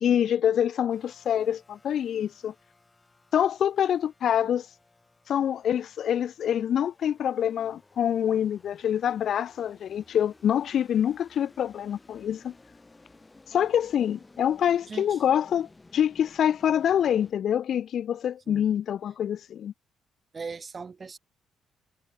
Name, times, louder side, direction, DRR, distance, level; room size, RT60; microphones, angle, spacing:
voice 1, 0.0-2.5 3.3-4.7 5.3-12.5 13.5-19.7, left 9 dB, 65° left, 0.7 m, -26 dB
sound 1, 0.9-17.3, left 3 dB, 20° left, 7.5 m, -57 dB
voice 2, 14.9-15.2 18.5-18.7 20.3-21.2, right 5 dB, 35° right, 0.6 m, -39 dB
cardioid pair, 90°, 0 cm